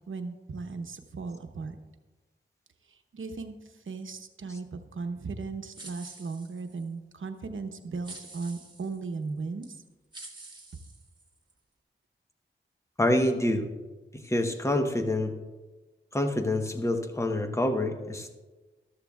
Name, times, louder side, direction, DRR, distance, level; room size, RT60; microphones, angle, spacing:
voice 1, 0.1-1.8 2.9-9.8, right 4 dB, 70° right, 6 dB, 0.9 m, -37 dB
sound 1, 5.7-6.9 8.0-9.0 9.6-9.7 10.1-11.5, right 2 dB, 20° right, 1.7 m, -47 dB
voice 2, 13.0-13.7 14.1-15.4 16.1-18.4, left 1 dB, 15° left, 6 dB, 1.0 m, -27 dB
13.5 x 13.0 x 2.4 m, 1.2 s
wide cardioid pair, 75°, 21 cm